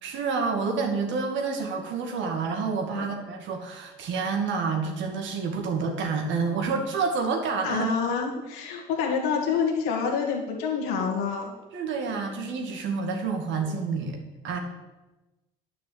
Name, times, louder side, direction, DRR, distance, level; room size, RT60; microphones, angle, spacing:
voice 1, 0.0-7.9 8.4-8.5 11.7-14.2 14.4-14.6, right 4 dB, 70° right, 3 dB, 2.2 m, -28 dB
voice 2, 7.6-11.5 13.6-13.8, left 6 dB, 80° left, -1 dB, 1.9 m, -27 dB
9.4 x 6.1 x 8.0 m, 1.1 s
hypercardioid pair, 60°, 20 cm